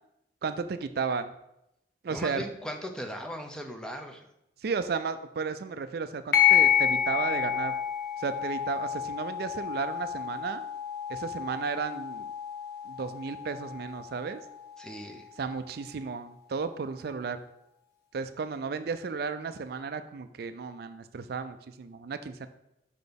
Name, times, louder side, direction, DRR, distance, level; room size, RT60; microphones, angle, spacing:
voice 1, 0.4-1.3 2.0-2.4 4.6-7.7 8.2-10.6 11.1-12.3 12.9-14.4 15.4-17.4 18.1-22.5, right 5 dB, 55° right, 10 dB, 0.4 m, -34 dB
voice 2, 2.1-4.3 14.8-15.3, equal, 5° left, 4 dB, 0.6 m, -38 dB
sound 1, 6.3-15.3, left 10 dB, 60° left, 0.8 m, -29 dB
5.6 x 4.1 x 5.2 m, 0.83 s
head